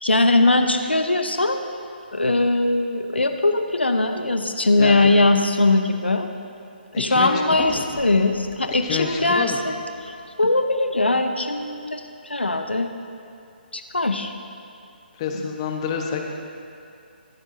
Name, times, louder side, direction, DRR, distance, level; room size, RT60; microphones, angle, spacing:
voice 1, 0.0-1.6 2.1-6.3 7.0-12.9 13.7-14.3, left 2 dB, 90° left, 6 dB, 0.7 m, -21 dB
voice 2, 4.8-5.2 6.9-7.8 8.8-9.6 15.2-16.3, left 6 dB, 30° left, 2 dB, 1.1 m, -28 dB
sound 1, 7.5-11.1, right 1 dB, 25° right, 2.7 m, -46 dB
22.5 x 8.0 x 2.7 m, 2.5 s
figure-of-eight pair, 140°, 6 cm